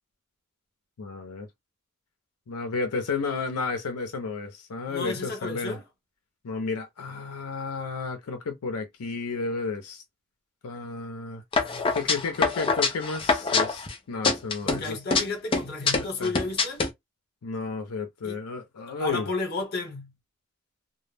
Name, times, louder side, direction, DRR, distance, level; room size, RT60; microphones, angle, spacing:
voice 1, 1.0-1.5 2.5-5.8 6.4-10.0 10.6-11.4 11.9-15.0 16.2-16.3 17.4-19.3, left 4 dB, 85° left, 0.5 m, -32 dB
voice 2, 4.9-5.8 11.6-12.0 14.6-16.8 18.2-18.4 19.0-20.1, left 3 dB, 45° left, 0.9 m, -33 dB
sound 1, 11.5-13.9 14.2-15.2 15.5-16.9, left 4 dB, 25° left, 0.4 m, -24 dB
2.1 x 2.0 x 3.2 m
head